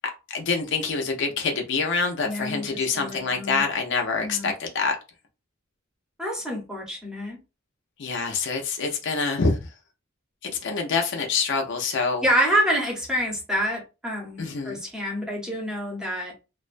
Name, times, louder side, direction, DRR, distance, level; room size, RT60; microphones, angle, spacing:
voice 1, 0.3-5.0 8.0-9.6 10.6-12.2 14.4-14.8, left 4 dB, 55° left, 0.5 m, -26 dB
voice 2, 2.2-3.6 4.2-4.5 6.2-7.4 12.2-16.3, equal, 5° right, 0.7 m, -27 dB
2.3 x 2.1 x 2.5 m
head